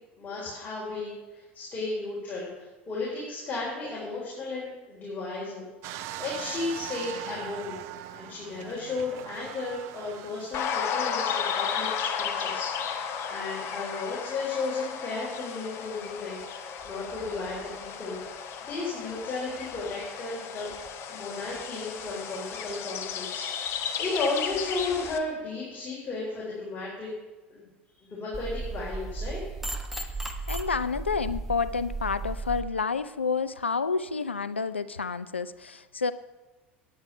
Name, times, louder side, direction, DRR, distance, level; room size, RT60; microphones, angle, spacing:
voice 1, 0.2-5.6 6.2-7.8 8.1-16.4 16.8-18.2 18.6-20.7 21.1-23.7 24.0-27.1 27.5-27.6 28.0-29.4, left 3 dB, 30° left, -5 dB, 3.7 m, -34 dB
sound 1, 5.8-10.8 11.4-11.5, right 13 dB, 50° right, 0.5 m, -41 dB
sound 2, 10.5-25.2, left 7 dB, 45° left, 1.1 m, -34 dB
sound 3, 28.3-32.6, right 3 dB, 5° right, 1.2 m, -35 dB
voice 2, 30.5-36.1, left 5 dB, 90° left, 14 dB, 0.3 m, -29 dB
9.4 x 9.3 x 5.5 m, 1.2 s
figure-of-eight pair, 75°, 6 cm